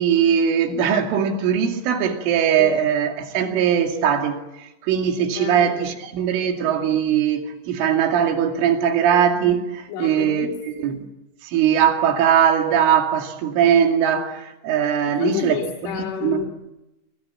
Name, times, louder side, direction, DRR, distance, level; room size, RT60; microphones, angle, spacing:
voice 1, 0.0-10.5 10.8-11.0 11.4-16.4, right 8 dB, 80° right, 4.9 m, -20 dB
voice 2, 5.2-5.9 9.9-10.9 15.1-16.5, left 9 dB, 75° left, 4.6 m, -30 dB
26.5 x 25.0 x 8.9 m
omnidirectional pair, 5.6 m